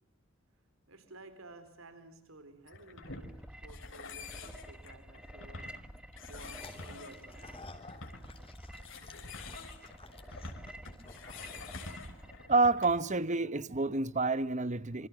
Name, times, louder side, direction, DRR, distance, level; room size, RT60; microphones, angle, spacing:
voice 1, 0.9-3.2 3.6-5.7 6.3-7.5, right 2 dB, 90° right, 4.1 m, -54 dB
sound 1, 2.7-13.1, left 3 dB, 65° left, 4.3 m, -48 dB
sound 2, 3.0-12.5, equal, 5° right, 1.2 m, -50 dB
sound 3, 6.3-12.0, left 2 dB, 30° left, 3.4 m, -53 dB
voice 2, 12.5-15.1, right 3 dB, 35° right, 1.0 m, -28 dB
27.0 x 26.0 x 7.4 m
head